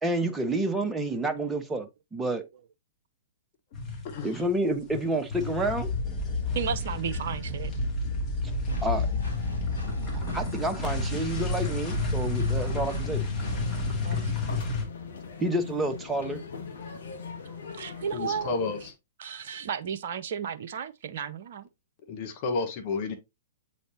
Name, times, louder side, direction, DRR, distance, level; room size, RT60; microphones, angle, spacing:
voice 1, 0.0-2.4 4.2-5.9 8.8-9.1 10.3-13.2 15.4-16.4, right 1 dB, 10° right, 1.1 m, -29 dB
sound 1, 3.7-4.5 4.8-14.8, left 3 dB, 30° left, 2.4 m, -30 dB
voice 2, 6.6-7.7 14.0-14.3 17.7-18.5 19.2-21.7, right 7 dB, 55° right, 0.6 m, -33 dB
Engine, 8.7-13.9, right 1 dB, 85° left, 1.7 m, -39 dB
sound 2, 13.4-18.9, left 5 dB, 70° left, 1.5 m, -41 dB
voice 3, 18.1-18.8 22.1-23.1, left 4 dB, 45° left, 1.4 m, -30 dB
7.9 x 4.2 x 2.9 m
figure-of-eight pair, 115°, 0 cm